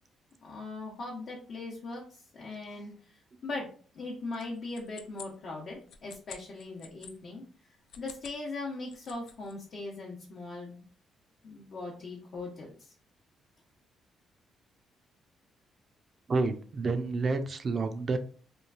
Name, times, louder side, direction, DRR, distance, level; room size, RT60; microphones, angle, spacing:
voice 1, 0.4-7.4 8.0-10.8 11.4-12.9, left 3 dB, 60° left, -3 dB, 0.7 m, -40 dB
sound 1, 4.3-7.1 7.8-8.4 8.7-9.5, left 7 dB, 75° left, 0.3 m, -49 dB
voice 2, 16.3-18.2, right 3 dB, 45° right, 8 dB, 0.4 m, -29 dB
3.0 x 2.3 x 2.4 m, 0.42 s
cardioid pair, 90°, 0 cm